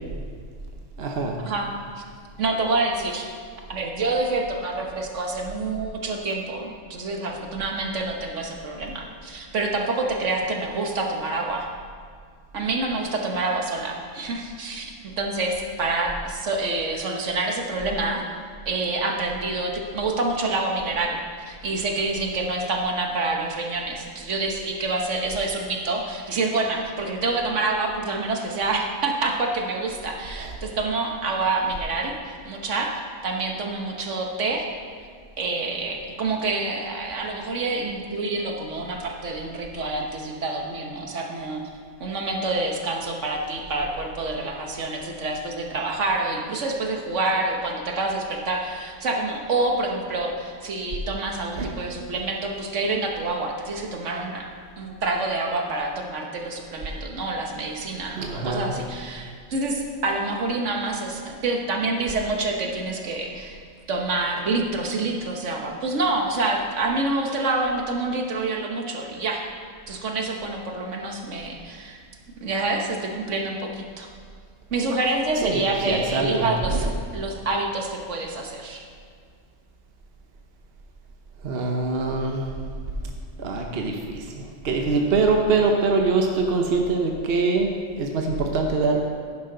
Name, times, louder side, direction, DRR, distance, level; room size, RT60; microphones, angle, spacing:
voice 1, 1.0-1.4 30.4-30.5 51.6-51.7 57.0-57.1 58.2-58.8 75.4-76.9 81.4-82.6 83.4-87.7 88.0-89.1, right 3 dB, 55° right, 2 dB, 1.1 m, -24 dB
voice 2, 2.4-3.3 3.7-11.7 12.5-14.9 15.2-18.2 18.7-21.2 21.5-32.9 33.2-34.7 35.4-41.6 42.0-54.4 54.8-63.6 63.9-69.4 69.9-72.0 72.4-74.1 74.7-76.9 77.1-78.8, right 2 dB, 70° right, 2 dB, 1.4 m, -27 dB
10.5 x 10.0 x 3.9 m, 2.1 s
omnidirectional pair, 1.3 m